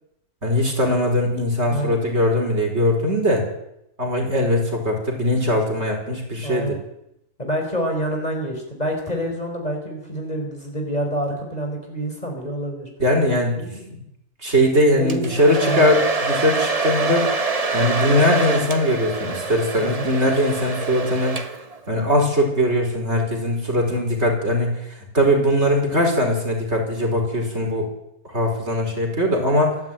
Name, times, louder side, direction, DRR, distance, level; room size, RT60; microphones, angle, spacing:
voice 1, 0.4-3.5 4.0-6.7 13.0-13.6 14.4-17.3 17.7-21.4 21.9-24.9 25.1-27.9 28.2-29.8, left 1 dB, 45° right, 2 dB, 5.2 m, -20 dB
voice 2, 6.4-6.8 7.4-12.9 13.6-13.9 14.9-15.3 15.6-15.9 19.7-20.1, equal, 25° left, 2 dB, 5.1 m, -27 dB
Domestic sounds home sounds, 15.1-21.8, right 4 dB, 25° right, 1.5 m, -25 dB
27.5 x 12.0 x 9.3 m, 0.82 s
omnidirectional pair, 1.6 m